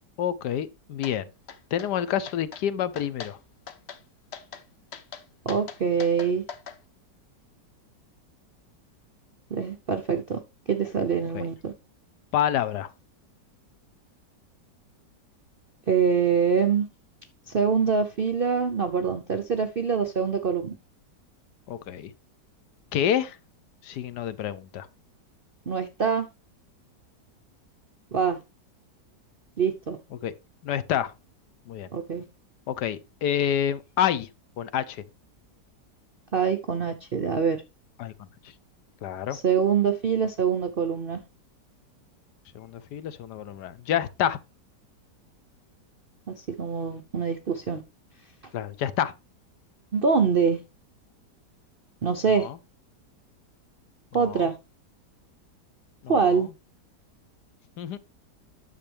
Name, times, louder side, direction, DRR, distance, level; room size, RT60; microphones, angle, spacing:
voice 1, 0.2-1.2 1.7-3.4 11.3-11.4 12.3-12.9 21.7-22.1 22.9-23.4 23.8-24.9 30.2-30.3 30.6-31.1 31.7-31.9 32.7-34.3 34.6-35.0 38.0-38.1 39.0-39.4 42.5-44.4 48.5-49.1 52.3-52.5 54.1-54.5 56.0-56.1 57.8-58.0, left 10 dB, 75° left, 1.3 m, -28 dB
sound 1, 1.0-1.2 1.5-1.9 2.3-2.6 3.0-3.3 3.7-4.0 4.3-4.6 4.9-6.8, left 7 dB, 50° left, 0.8 m, -41 dB
voice 2, 5.4-6.4 9.5-10.4 10.7-11.7 15.9-16.9 17.5-20.8 25.7-26.3 28.1-28.4 29.6-30.0 31.9-32.2 36.3-37.6 39.3-41.2 46.3-47.8 49.9-50.6 52.0-52.5 54.1-54.6 56.1-56.5, right 6 dB, 60° right, 0.5 m, -24 dB
9.8 x 6.7 x 3.3 m
omnidirectional pair, 1.9 m